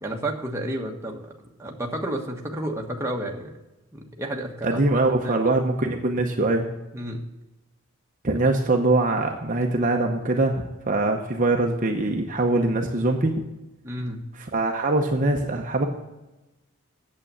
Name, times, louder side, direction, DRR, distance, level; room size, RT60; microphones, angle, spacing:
voice 1, 0.0-1.3 1.6-3.5 3.9-5.6 6.9-7.2 13.8-14.2, right 1 dB, 10° right, 0 dB, 1.2 m, -31 dB
voice 2, 4.6-6.7 8.2-13.3 14.3-15.9, right 2 dB, 35° right, 2 dB, 0.8 m, -23 dB
8.8 x 7.5 x 6.8 m, 1.0 s
head